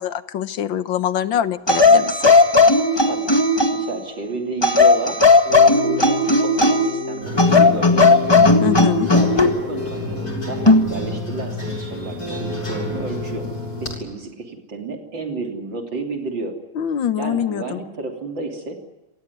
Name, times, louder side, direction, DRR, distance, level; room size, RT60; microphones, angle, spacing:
voice 1, 0.0-2.3 8.6-9.1 16.8-17.8, left 10 dB, 75° left, 12 dB, 1.8 m, -24 dB
sound 1, 1.7-3.9 4.6-7.0 7.4-9.6 10.7-10.9, left 3 dB, 15° left, 1.7 m, -15 dB
voice 2, 3.0-3.3 3.7-5.2 5.8-8.4 9.1-10.6 10.9-13.5 13.8-16.5 17.2-18.8, right 3 dB, 65° right, 2 dB, 3.9 m, -31 dB
Keyboard (musical), 5.5-10.9, left 2 dB, 50° right, 5.5 m, -32 dB
sound 2, 7.2-14.0, left 1 dB, 45° left, 8.3 m, -30 dB
28.0 x 18.0 x 9.5 m, 1.1 s
omnidirectional pair, 2.2 m